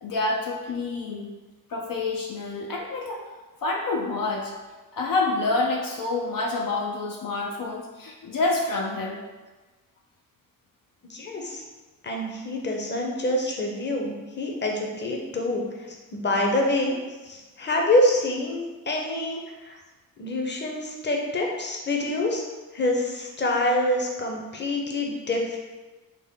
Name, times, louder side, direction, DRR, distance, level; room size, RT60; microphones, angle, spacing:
voice 1, 0.0-1.3 1.7-3.2 3.6-4.5 4.9-9.2, left 3 dB, 65° left, 0 dB, 0.5 m, -27 dB
voice 2, 11.1-11.6 12.0-17.0 17.2-19.8 20.2-22.4 22.7-25.6, left 1 dB, 30° left, 0 dB, 0.7 m, -26 dB
3.7 x 2.1 x 3.6 m, 1.2 s
cardioid pair, 65°, 36 cm